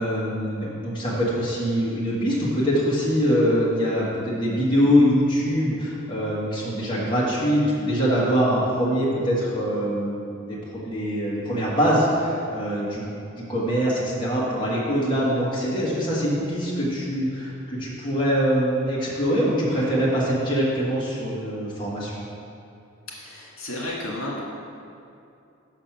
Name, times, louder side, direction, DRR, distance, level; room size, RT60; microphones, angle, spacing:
voice 1, 0.0-10.2 10.5-13.2 13.5-22.2, equal, 25° left, -7 dB, 1.6 m, -23 dB
voice 2, 23.1-24.4, left 1 dB, 85° left, -4 dB, 1.9 m, -32 dB
6.5 x 6.1 x 5.9 m, 2.6 s
head